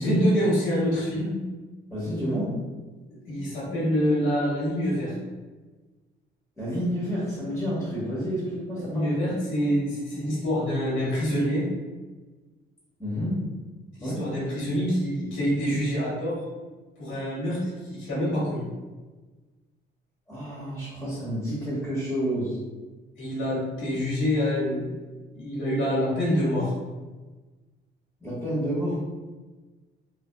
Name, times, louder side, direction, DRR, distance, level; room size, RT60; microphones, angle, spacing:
voice 1, 0.0-1.5 3.2-5.1 8.9-11.7 14.0-16.4 17.0-18.7 23.2-24.9 25.3-26.7, equal, 75° left, -7 dB, 1.1 m, -26 dB
voice 2, 1.9-2.5 6.6-9.4 13.0-13.4 14.0-14.2 20.3-22.6 28.2-29.0, equal, 5° left, -9 dB, 1.1 m, -29 dB
2.5 x 2.3 x 2.2 m, 1.3 s
cardioid pair, 90°, 20 cm